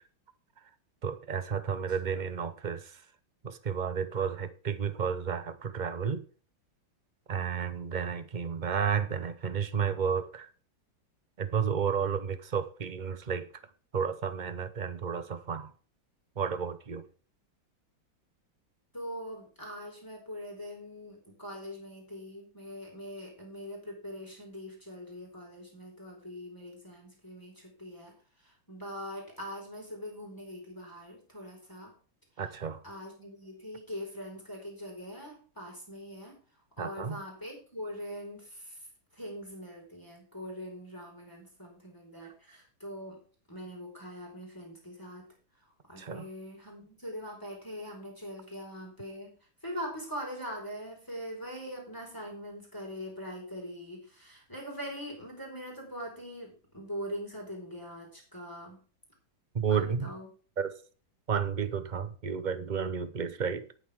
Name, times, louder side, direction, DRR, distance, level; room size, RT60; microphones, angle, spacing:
voice 1, 1.0-2.9 3.4-6.2 7.3-10.5 11.4-13.4 13.9-15.7 16.4-17.0 32.4-32.8 36.8-37.2 46.0-46.2 59.5-60.1 60.6-60.8 61.3-63.8, right 7 dB, 45° right, 0.5 m, -32 dB
voice 2, 18.9-31.9 32.4-32.5 32.8-36.4 36.8-38.9 39.1-43.2 43.5-45.3 45.9-49.3 49.6-58.8 59.7-60.3, equal, 10° left, 4.5 m, -42 dB
18.5 x 7.0 x 3.6 m
omnidirectional pair, 2.1 m